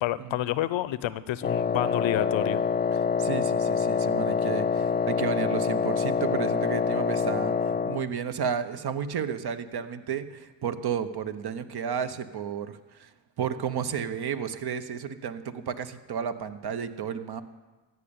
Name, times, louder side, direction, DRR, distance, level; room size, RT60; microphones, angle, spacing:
voice 1, 0.0-2.6, left 13 dB, 70° left, 17 dB, 0.7 m, -29 dB
Wind instrument woodwind instrument, 1.4-8.1, left 6 dB, 20° left, 0.3 m, -26 dB
voice 2, 3.2-13.1 13.4-17.4, right 7 dB, 50° right, 11 dB, 1.0 m, -32 dB
14.0 x 5.5 x 8.7 m, 1.2 s
supercardioid pair, 65°, 48 cm